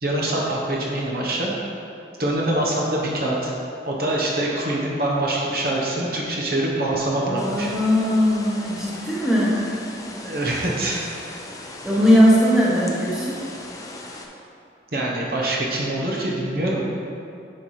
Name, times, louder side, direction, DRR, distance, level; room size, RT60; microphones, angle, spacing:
voice 1, 0.0-1.5 2.2-3.5 3.9-7.7 10.2-11.0 14.9-16.8, right 1 dB, 60° right, -3 dB, 1.0 m, -24 dB
voice 2, 7.2-9.7 11.8-13.4, equal, 5° right, -7 dB, 1.0 m, -19 dB
sound 1, 7.4-14.3, left 2 dB, 20° left, 0.5 m, -38 dB
9.5 x 4.2 x 3.2 m, 2.6 s
head